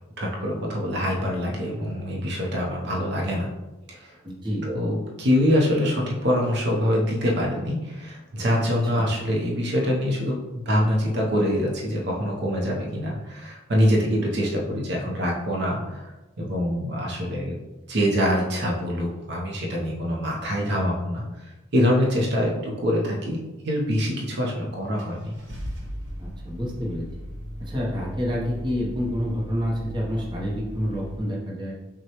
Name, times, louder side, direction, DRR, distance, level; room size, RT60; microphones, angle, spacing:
voice 1, 0.2-3.5 3.9-4.1 4.6-17.6 17.9-25.4, equal, 55° right, -2 dB, 0.7 m, -25 dB
voice 2, 4.2-4.7 8.9-9.1 22.5-22.6 26.2-27.0 27.6-31.7, equal, 25° right, -4 dB, 0.8 m, -28 dB
Car / Engine starting, 24.3-24.4 25.0-31.2, equal, 75° right, 1.1 m, -37 dB
6.1 x 2.2 x 2.9 m, 1.1 s
head